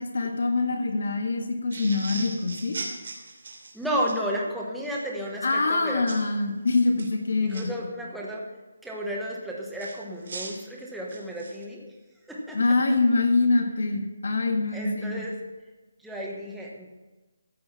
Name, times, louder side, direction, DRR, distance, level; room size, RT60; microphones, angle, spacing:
voice 1, 0.0-2.8 5.4-7.7 12.5-15.2, left 3 dB, 55° left, 4 dB, 1.6 m, -24 dB
sound 1, 1.7-4.2 6.1-6.3 6.8-7.6 9.8-11.6, right 3 dB, 45° right, 3.0 m, -39 dB
voice 2, 3.7-6.1 7.4-8.4 8.8-11.9 12.3-12.6 14.7-15.4 16.0-16.9, equal, ahead, -4 dB, 1.2 m, -32 dB
14.5 x 8.0 x 5.7 m, 1.2 s
hypercardioid pair, 175°, 0 cm